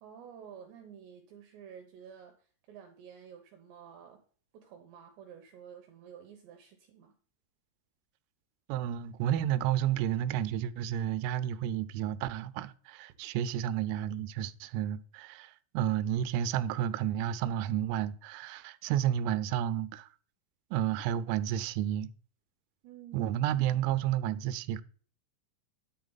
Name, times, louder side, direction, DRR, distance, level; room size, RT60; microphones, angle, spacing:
voice 1, 0.0-4.2 4.5-7.1 22.8-23.3, right 8 dB, 75° right, 2.8 m, -51 dB
voice 2, 8.7-20.1 20.7-22.1 23.1-24.8, right 11 dB, 90° right, 3.3 m, -31 dB
11.0 x 7.6 x 4.0 m
omnidirectional pair, 6.0 m